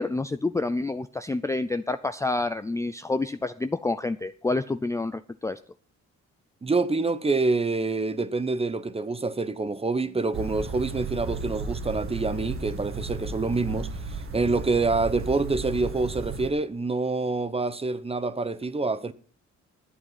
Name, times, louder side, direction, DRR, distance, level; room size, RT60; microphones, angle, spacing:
voice 1, 0.0-5.6, left 2 dB, 10° left, 0.4 m, -28 dB
voice 2, 6.6-19.1, right 3 dB, 20° right, 0.9 m, -26 dB
sound 1, 10.3-16.5, right 4 dB, 45° right, 1.6 m, -34 dB
11.0 x 8.6 x 5.8 m
cardioid pair, 90°, 30 cm